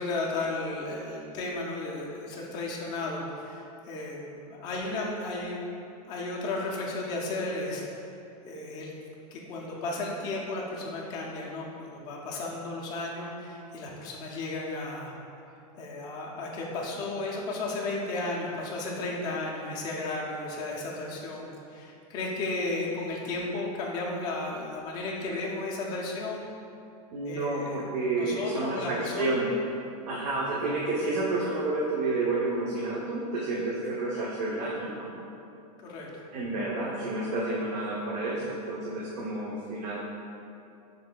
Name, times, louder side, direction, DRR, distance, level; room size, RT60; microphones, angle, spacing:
voice 1, 0.0-5.7 6.1-7.8 8.5-8.9 9.3-15.1 15.8-26.5 27.3-27.9 28.2-29.4 35.8-36.1, left 2 dB, 20° left, -3 dB, 0.5 m, -34 dB
voice 2, 27.1-29.6 30.1-35.1 36.3-40.0, right 2 dB, 85° right, -5 dB, 0.7 m, -30 dB
6.2 x 3.3 x 2.2 m, 2.7 s
supercardioid pair, 165°, 20 cm